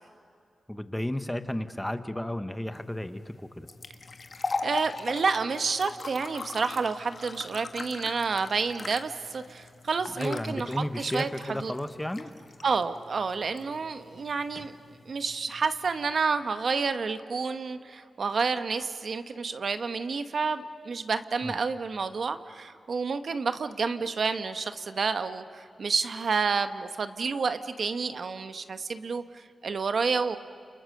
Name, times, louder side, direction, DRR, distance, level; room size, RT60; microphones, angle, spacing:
voice 1, 0.7-3.7 10.1-12.3 21.4-21.6, left 1 dB, 10° left, 10 dB, 1.1 m, -33 dB
sound 1, 2.7-16.1, left 3 dB, 50° left, 1.5 m, -41 dB
voice 2, 4.6-11.3 11.6-11.7 12.6-14.7 15.1-30.4, right 5 dB, 65° right, 10 dB, 1.1 m, -29 dB
29.5 x 29.0 x 6.6 m, 2.5 s
wide cardioid pair, 90°, 0 cm